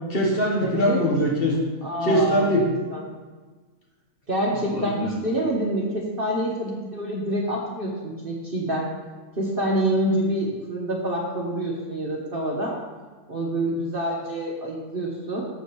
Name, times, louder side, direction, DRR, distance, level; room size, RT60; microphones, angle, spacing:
voice 1, 0.1-1.6 2.0-2.7 4.6-5.1, equal, 40° left, -2 dB, 1.6 m, -22 dB
voice 2, 0.6-1.0 1.8-3.0 4.3-8.9 9.4-12.8 13.3-15.5, right 1 dB, 40° right, -2 dB, 1.2 m, -27 dB
6.9 x 4.9 x 6.9 m, 1.3 s
omnidirectional pair, 1.6 m